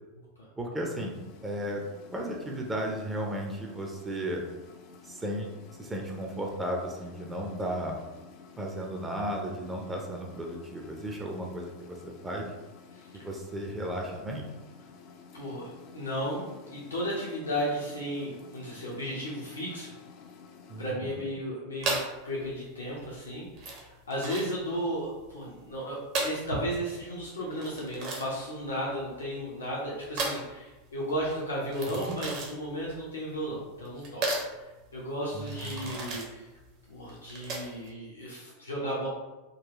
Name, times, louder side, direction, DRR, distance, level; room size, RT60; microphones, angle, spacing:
voice 1, 0.6-1.2 1.4-1.8 2.1-4.4 5.0-5.5 5.8-8.0 8.6-12.5 13.1-14.5 20.7-21.1 31.9-32.2 35.3-36.0, right 1 dB, 15° right, 0 dB, 0.5 m, -35 dB
sound 1, 1.0-21.0, left 5 dB, 45° left, 0.4 m, -52 dB
voice 2, 15.3-19.9 20.8-22.0 22.2-34.3 34.6-36.5 36.9-39.1, equal, 75° left, -6 dB, 0.7 m, -34 dB
sound 2, 21.8-37.9, right 2 dB, 45° right, 0.8 m, -36 dB
3.8 x 2.3 x 2.9 m, 1.1 s
figure-of-eight pair, 85°, 0 cm